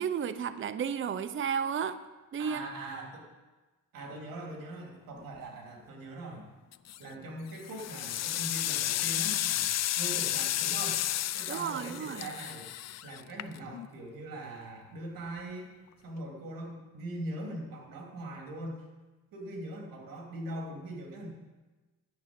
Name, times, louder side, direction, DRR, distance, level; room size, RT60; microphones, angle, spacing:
voice 1, 0.0-2.0 2.3-2.7 11.5-12.2, right 7 dB, 35° right, 12 dB, 0.6 m, -32 dB
voice 2, 2.4-3.2 3.9-6.5 7.0-11.1 11.3-12.7 13.0-15.7 16.0-18.9 19.3-21.3, right 1 dB, 80° right, 0 dB, 3.1 m, -41 dB
sound 1, 6.7-7.1 7.6-13.9, left 13 dB, 50° left, 0.4 m, -32 dB
10.5 x 7.1 x 8.8 m, 1.2 s
cardioid pair, 100°, 34 cm